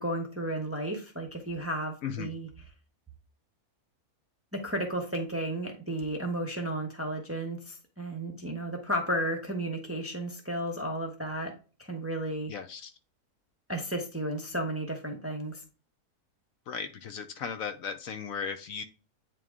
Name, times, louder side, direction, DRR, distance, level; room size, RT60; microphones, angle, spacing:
voice 1, 0.0-2.5 4.5-11.5 11.8-12.5 13.7-15.6, right 1 dB, 10° right, 0.7 m, -33 dB
voice 2, 12.5-12.9 16.7-18.8, left 6 dB, 70° left, 1.0 m, -36 dB
9.0 x 3.1 x 3.6 m
omnidirectional pair, 1.6 m